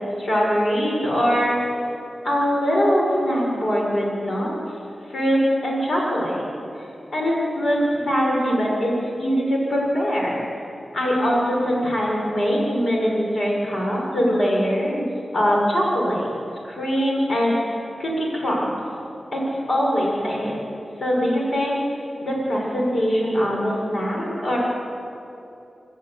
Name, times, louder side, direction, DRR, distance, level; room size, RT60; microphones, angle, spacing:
voice 1, 0.2-1.6 2.2-4.5 5.1-6.5 6.8-10.4 10.9-15.0 15.3-16.4 16.6-18.8 19.3-20.6 21.0-24.6, equal, 65° left, -3 dB, 6.7 m, -22 dB
26.5 x 14.0 x 8.3 m, 2.7 s
wide cardioid pair, 70°, 0 cm